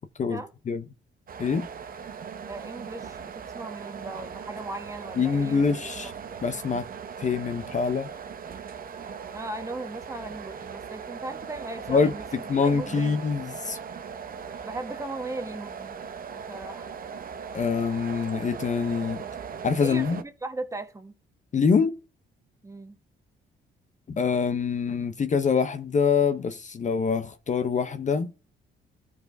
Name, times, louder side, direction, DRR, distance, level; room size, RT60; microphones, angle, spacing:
voice 1, 0.2-0.9 1.4-1.7 5.2-6.1 6.4-6.8 7.2-8.1 11.9-12.1 12.5-13.8 17.5-19.2 19.6-20.2 21.5-22.0 24.2-28.3, left 5 dB, 40° left, 0.7 m, -25 dB
sound 1, 1.3-20.2, right 6 dB, 45° right, 0.8 m, -39 dB
voice 2, 2.5-5.8 9.3-13.2 14.6-16.0 16.3-16.9 19.8-21.1 22.6-23.0, right 2 dB, 15° right, 1.2 m, -37 dB
13.0 x 4.8 x 2.6 m
cardioid pair, 90°, 20 cm